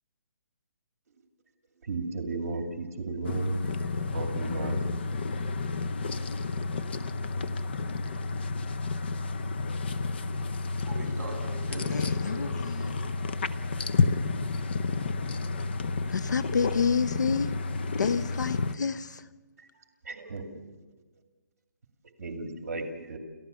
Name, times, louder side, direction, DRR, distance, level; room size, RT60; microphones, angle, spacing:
voice 1, 1.8-5.0 19.6-20.8 22.2-23.2, right 3 dB, 55° right, 4 dB, 2.5 m, -35 dB
sound 1, 3.2-18.7, left 4 dB, 35° left, 0.7 m, -31 dB
voice 2, 10.8-12.9, right 2 dB, 5° right, -11 dB, 7.3 m, -41 dB
voice 3, 11.9-13.0 16.1-17.5 18.0-19.2, left 6 dB, 75° left, 14 dB, 0.9 m, -29 dB
30.0 x 14.5 x 7.1 m, 1.3 s
hypercardioid pair, 175°, 10 cm